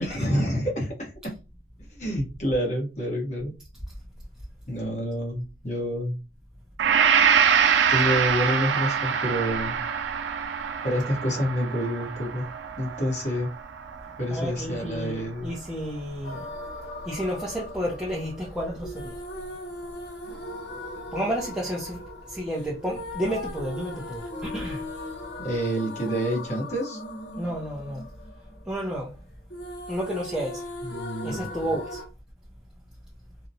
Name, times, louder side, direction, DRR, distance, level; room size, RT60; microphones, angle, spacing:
voice 1, 0.1-1.3 1.9-3.5 4.7-6.2 7.9-9.8 10.8-12.5 12.8-13.5 14.2-15.5 25.4-27.0 30.8-31.7, equal, 40° left, 1.0 m, -28 dB
Gong, 6.8-14.8, right 7 dB, 80° right, 0.4 m, -25 dB
voice 2, 14.3-16.5 17.1-19.2 21.1-24.8 27.4-28.1 28.7-29.2 29.9-30.7 31.2-32.0, equal, 5° right, 0.5 m, -31 dB
sound 1, 16.2-29.2 29.5-32.1, left 1 dB, 65° left, 0.8 m, -39 dB
2.8 x 2.1 x 2.6 m
head